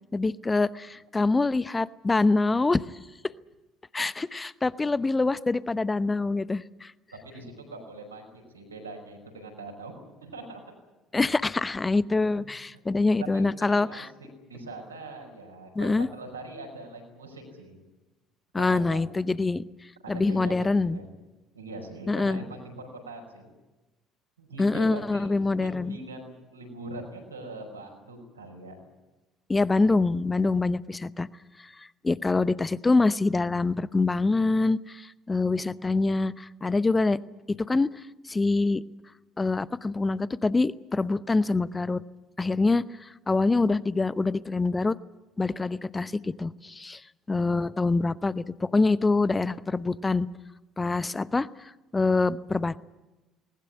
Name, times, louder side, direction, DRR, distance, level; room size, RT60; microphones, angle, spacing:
voice 1, 0.1-2.8 3.9-6.9 11.1-14.1 15.8-16.1 18.5-19.6 20.1-21.0 22.1-22.4 24.6-26.0 29.5-31.3 32.0-37.2 37.5-37.9 38.3-38.8 39.4-42.0 42.4-42.8 43.3-45.0 45.4-47.0 47.3-50.3 50.8-51.5 51.9-52.8, left 3 dB, 20° left, 18 dB, 0.8 m, -25 dB
voice 2, 7.2-9.9 10.2-10.6 12.9-14.1 14.5-17.8 18.6-19.3 20.0-21.1 21.5-23.5 24.4-28.8, right 2 dB, 85° right, 2 dB, 5.5 m, -42 dB
20.0 x 20.0 x 9.8 m, 1.1 s
figure-of-eight pair, 55°, 0 cm